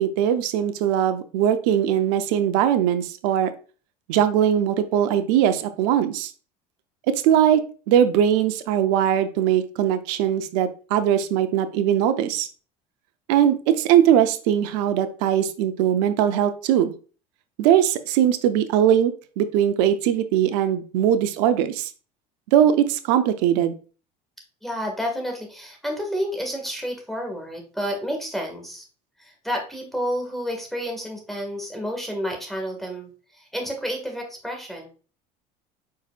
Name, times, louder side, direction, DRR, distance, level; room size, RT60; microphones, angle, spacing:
voice 1, 0.0-3.5 4.1-6.3 7.1-7.6 7.9-12.5 13.3-16.9 17.6-21.9 22.5-23.7, right 10 dB, 75° right, 10 dB, 0.6 m, -20 dB
voice 2, 24.6-28.8 29.2-34.9, equal, ahead, 2 dB, 1.8 m, -30 dB
4.7 x 4.6 x 2.4 m, 0.37 s
supercardioid pair, 90°, 21 cm